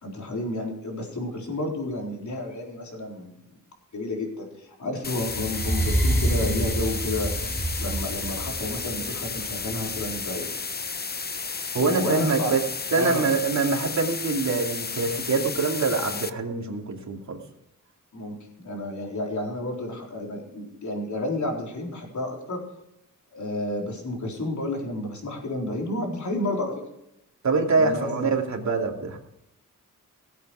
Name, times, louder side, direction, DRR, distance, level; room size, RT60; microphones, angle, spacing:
voice 1, 0.0-3.5 3.9-7.3 7.8-10.5 11.8-12.5 12.9-13.3 18.1-22.6 23.3-26.8 27.7-28.3, left 2 dB, 60° left, 0 dB, 4.1 m, -31 dB
sound 1, 5.0-16.3, left 4 dB, 30° left, 0.8 m, -33 dB
sound 2, 5.2-10.3, right 1 dB, 5° left, 4.9 m, -28 dB
voice 2, 11.7-12.6 12.9-17.4 27.4-29.2, right 4 dB, 55° right, 1 dB, 2.8 m, -24 dB
18.0 x 8.5 x 5.0 m, 0.80 s
wide cardioid pair, 95°, 33 cm